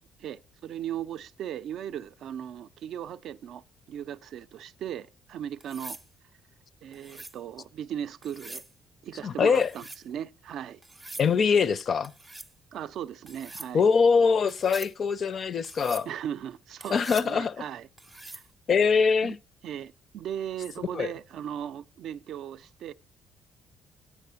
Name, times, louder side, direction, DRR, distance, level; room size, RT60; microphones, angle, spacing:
voice 1, 0.2-6.0 6.8-8.6 9.0-10.8 12.7-13.8 16.1-17.9 18.3-18.4 19.2-19.4 19.6-22.9, right 10 dB, 65° right, 0.4 m, -37 dB
sound 1, 5.6-6.1 6.9-7.4 8.2-8.7 9.6-10.0 10.8-11.3 12.0-12.5 13.3-13.7 14.5-14.9 15.6-16.1 16.8-17.3 18.0-18.5 20.4-20.7, right 2 dB, 10° right, 0.5 m, -43 dB
voice 2, 9.2-9.7 11.2-12.1 13.7-16.1 16.9-17.6 18.7-19.4 20.9-21.1, left 5 dB, 40° left, 0.4 m, -23 dB
8.4 x 4.9 x 6.8 m
cardioid pair, 135°, 0 cm